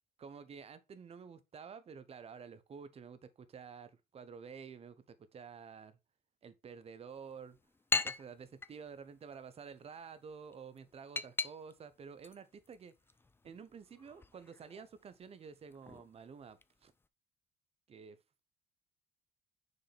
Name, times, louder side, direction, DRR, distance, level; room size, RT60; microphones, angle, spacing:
voice 1, 0.2-6.0 6.4-7.6 8.0-12.9 13.4-16.9 17.9-18.2, right 6 dB, 35° right, 0.9 m, -50 dB
sound 1, 7.1-17.1, left 3 dB, 15° left, 0.4 m, -43 dB
6.3 x 4.9 x 3.4 m
cardioid pair, 110°, 17 cm